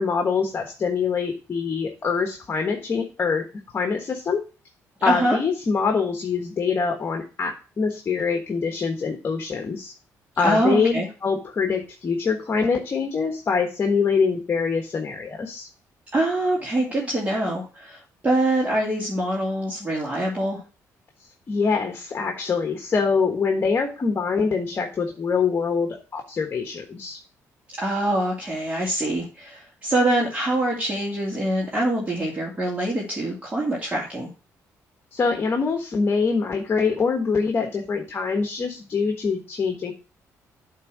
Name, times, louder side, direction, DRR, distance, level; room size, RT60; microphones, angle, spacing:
voice 1, 0.0-3.5 3.7-4.4 5.0-9.9 10.4-15.7 21.5-27.2 35.1-39.9, left 5 dB, 40° left, 3 dB, 1.3 m, -24 dB
voice 2, 5.0-5.4 10.4-11.1 16.1-20.6 27.8-34.3, right 1 dB, 20° right, -5 dB, 2.6 m, -24 dB
8.5 x 3.7 x 6.1 m, 0.33 s
cardioid pair, 110°, 6 cm